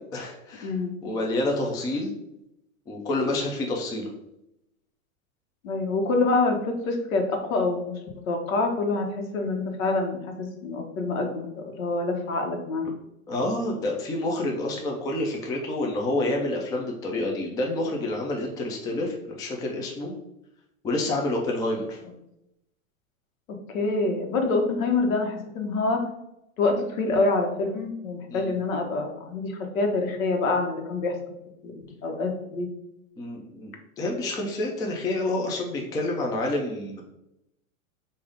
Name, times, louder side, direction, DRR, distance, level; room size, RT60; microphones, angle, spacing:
voice 1, 0.1-0.7 1.0-2.1 2.9-4.1 13.3-20.1 20.8-22.0 28.3-28.5 33.2-37.0, left 2 dB, 10° left, 0 dB, 0.4 m, -28 dB
voice 2, 5.6-8.0 8.2-12.9 23.5-26.0 26.6-31.1 31.6-32.7, left 3 dB, 80° left, 3 dB, 1.2 m, -26 dB
5.1 x 2.7 x 3.5 m, 0.84 s
hypercardioid pair, 130°, 40 cm